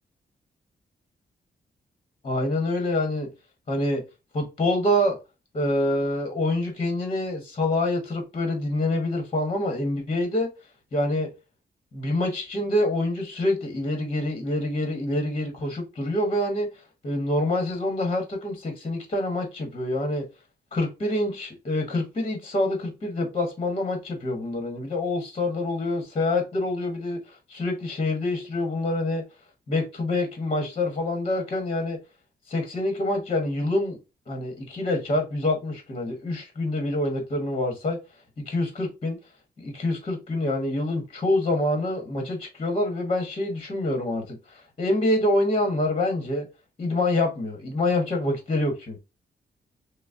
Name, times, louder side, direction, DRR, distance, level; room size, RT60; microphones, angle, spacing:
voice 1, 2.2-3.3 3.7-4.0 4.3-5.2 5.5-10.5 10.9-11.3 11.9-16.7 17.0-20.2 20.7-29.2 29.7-32.0 32.5-34.0 34.3-38.0 38.4-39.2 39.6-46.5 46.8-49.0, left 1 dB, 35° left, 1.1 m, -26 dB
6.1 x 2.1 x 2.5 m
wide cardioid pair, 155°, 17 cm